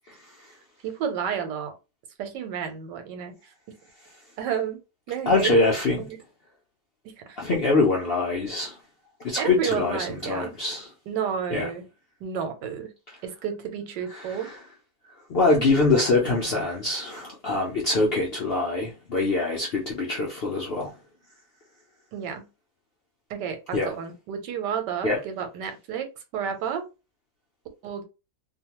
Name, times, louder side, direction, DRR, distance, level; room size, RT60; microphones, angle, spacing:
voice 1, 0.8-1.7 2.2-3.3 4.4-4.8 5.1-5.6 6.1-6.2 7.0-7.4 9.4-10.5 11.1-11.8 12.2-12.9 13.2-14.5 22.1-22.5 23.3-26.1 26.3-26.9 27.8-28.0, right 8 dB, 90° right, 1.3 m, -31 dB
voice 2, 5.3-6.1 7.4-8.8 9.2-10.9 11.5-11.7 14.1-14.6 15.3-20.9 23.7-23.9 25.0-25.2, left 3 dB, 80° left, 0.5 m, -24 dB
2.8 x 2.2 x 2.9 m
omnidirectional pair, 1.8 m